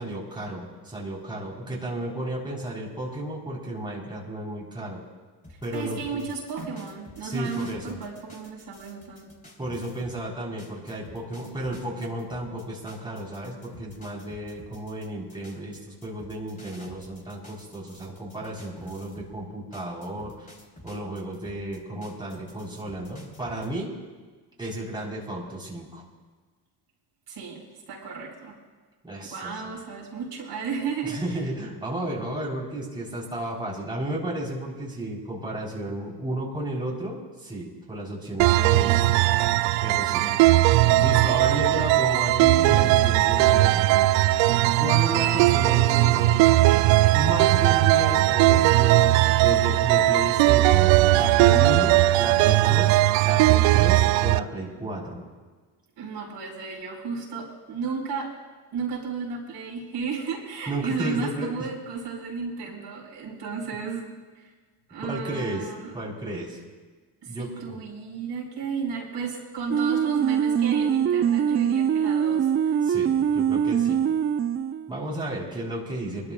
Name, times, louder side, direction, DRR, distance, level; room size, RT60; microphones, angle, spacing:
voice 1, 0.0-5.0 5.6-6.2 7.2-8.0 9.6-20.5 20.8-23.9 24.6-26.0 29.0-29.5 31.0-39.0 39.8-40.3 41.0-43.8 44.8-46.5 47.1-55.2 60.7-61.5 65.0-65.6 65.9-66.6 67.3-67.8 72.8-74.0 74.9-76.3, right 1 dB, 10° right, -4 dB, 3.7 m, -33 dB
sound 1, 5.4-10.2 10.6-19.4 19.7-23.7, left 1 dB, 15° left, 3.5 m, -50 dB
voice 2, 5.5-9.3 27.3-28.6 29.2-31.2 40.1-40.8 56.0-58.3 58.7-64.1 64.3-64.5 64.9-65.9 67.2-72.8, right 5 dB, 60° right, -3 dB, 5.0 m, -34 dB
sound 2, 38.4-54.4, right 16 dB, 75° right, 0.5 m, -19 dB
sound 3, 69.7-75.0, right 8 dB, 30° right, 0.5 m, -23 dB
24.5 x 13.0 x 2.3 m, 1.4 s
supercardioid pair, 70°, 47 cm